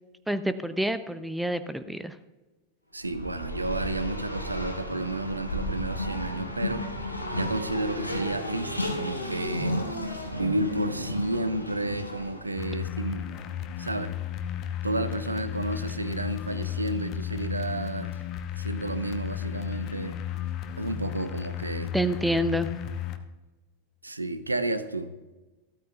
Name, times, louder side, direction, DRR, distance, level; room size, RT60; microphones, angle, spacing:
voice 1, 0.3-2.2 21.9-22.7, equal, 5° right, 12 dB, 0.5 m, -27 dB
voice 2, 2.9-6.9 7.3-9.8 10.3-13.3 13.8-14.1 14.8-18.1 18.5-20.2 20.8-21.9 24.0-25.1, right 2 dB, 80° right, 12 dB, 0.7 m, -31 dB
Race car auto racing, 3.0-12.7, equal, 85° left, 1.3 m, -33 dB
sound 1, 12.5-23.2, left 10 dB, 35° left, 0.9 m, -34 dB
15.0 x 13.0 x 2.3 m, 1.1 s
figure-of-eight pair, 90°, 0 cm